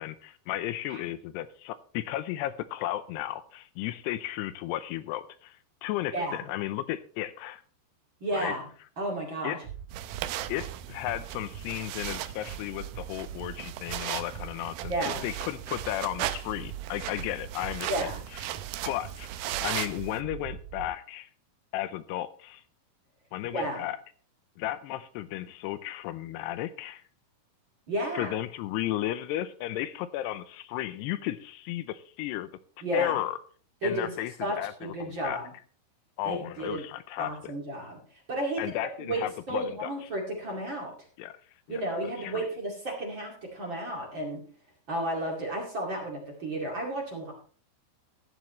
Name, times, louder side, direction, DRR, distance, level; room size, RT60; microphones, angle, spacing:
voice 1, 0.0-7.6 8.3-8.5 9.4-9.6 10.5-14.9 15.2-18.1 18.9-21.3 21.7-22.6 23.3-24.0 24.6-27.0 28.1-32.5 32.9-33.4 33.8-35.4 36.2-37.3 38.6-40.1 41.2-41.4 41.7-41.8 42.2-42.5, left 13 dB, 85° left, 13 dB, 2.7 m, -34 dB
voice 2, 6.1-6.4 8.2-8.6 9.0-9.6 14.9-15.3 17.9-18.2 23.5-23.8 27.9-28.3 32.8-33.2 33.8-34.1 34.4-35.5 36.2-36.8 37.2-38.6 39.0-40.9 41.7-44.4 44.9-47.3, right 1 dB, 35° right, -1 dB, 2.4 m, -32 dB
sound 1, 9.6-20.9, right 9 dB, 60° right, 2.2 m, -42 dB
sound 2, 9.9-20.2, right 13 dB, 80° right, 2.3 m, -37 dB
14.5 x 11.0 x 3.1 m, 0.43 s
omnidirectional pair, 4.8 m